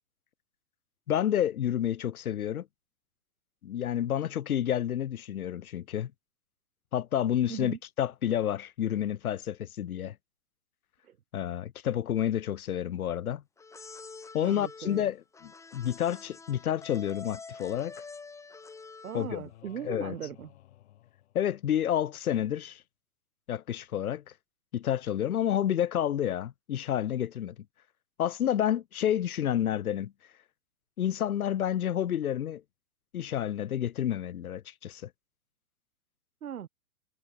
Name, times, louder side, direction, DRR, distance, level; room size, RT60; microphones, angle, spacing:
voice 1, 1.1-2.7 3.6-6.1 6.9-10.1 11.3-13.4 14.3-15.2 15.4-17.9 19.1-19.4 19.8-20.1 21.3-22.8 23.5-24.2 24.7-27.5 28.2-30.1 31.0-32.6 33.1-35.1, left 10 dB, 90° left, 1.7 m, -29 dB
sound 1, 13.6-19.5, left 4 dB, 5° left, 6.0 m, -47 dB
voice 2, 14.4-15.1 19.0-20.5 36.4-36.7, right 9 dB, 85° right, 4.2 m, -39 dB
sound 2, 19.5-22.0, left 14 dB, 50° left, 4.6 m, -55 dB
hypercardioid pair, 165°, 42 cm